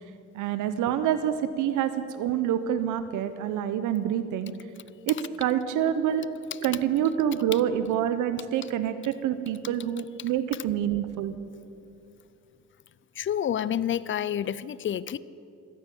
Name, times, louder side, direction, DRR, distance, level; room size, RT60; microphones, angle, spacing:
voice 1, 0.3-4.5 5.1-6.3 6.6-11.3, right 10 dB, 85° right, 12 dB, 0.8 m, -27 dB
voice 2, 13.1-15.2, left 10 dB, 40° left, 19 dB, 0.5 m, -28 dB
13.5 x 10.5 x 8.8 m, 2.7 s
cardioid pair, 90°, 30 cm